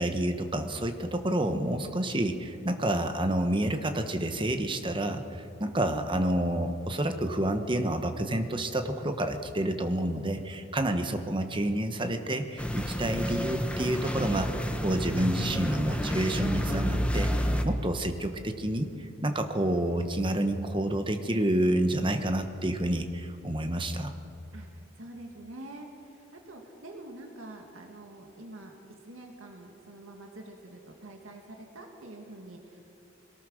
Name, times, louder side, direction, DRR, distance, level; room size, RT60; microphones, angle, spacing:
voice 1, 0.0-24.1, right 1 dB, 25° right, 7 dB, 1.2 m, -29 dB
sound 1, 12.6-17.6, equal, 5° left, 1.1 m, -30 dB
voice 2, 24.5-28.7 29.0-32.8, right 1 dB, 90° right, 2 dB, 2.2 m, -46 dB
22.0 x 18.0 x 6.5 m, 2.7 s
head